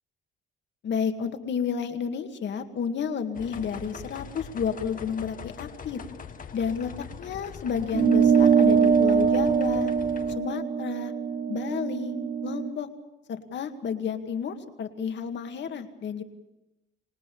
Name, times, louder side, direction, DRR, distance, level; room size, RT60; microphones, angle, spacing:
voice 1, 0.8-6.0 6.5-6.9 7.2-9.9 10.4-11.1 11.5-12.2 12.4-12.9 13.3-16.2, left 7 dB, 65° left, 7 dB, 2.2 m, -31 dB
sound 1, 3.3-10.4, left 6 dB, 45° left, 1.4 m, -42 dB
sound 2, 7.9-12.7, right 6 dB, 40° right, 0.9 m, -22 dB
26.0 x 19.5 x 7.1 m, 0.97 s
cardioid pair, 90°, 20 cm